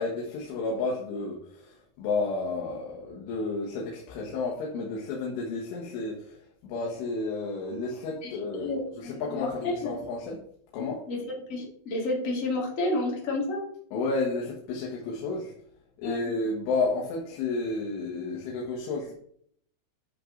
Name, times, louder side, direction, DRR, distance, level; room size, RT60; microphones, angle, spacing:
voice 1, 0.0-10.4 10.7-11.1 13.9-15.5 16.0-19.1, left 3 dB, 80° left, -3 dB, 4.0 m, -31 dB
voice 2, 8.2-9.7 11.1-13.6 16.0-16.3, left 2 dB, 35° left, -2 dB, 1.2 m, -31 dB
11.5 x 6.6 x 3.9 m, 0.66 s
omnidirectional pair, 5.5 m